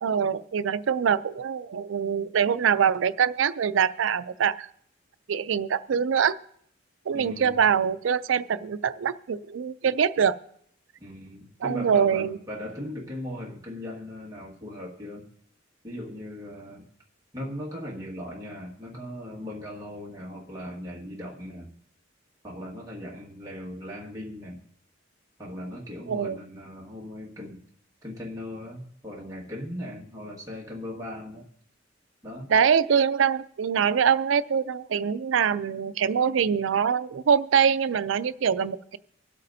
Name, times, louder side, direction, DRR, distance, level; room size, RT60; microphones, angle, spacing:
voice 1, 0.0-4.7 5.3-6.4 7.1-10.4 11.6-12.4 26.1-26.4 32.5-39.0, right 7 dB, 85° right, 15 dB, 0.4 m, -24 dB
voice 2, 7.1-7.7 11.0-15.3 15.8-16.9 17.3-21.7 22.4-24.6 25.4-27.6 28.0-31.5 32.2-32.5, left 1 dB, 20° right, -4 dB, 1.7 m, -38 dB
24.5 x 8.3 x 2.7 m, 0.68 s
head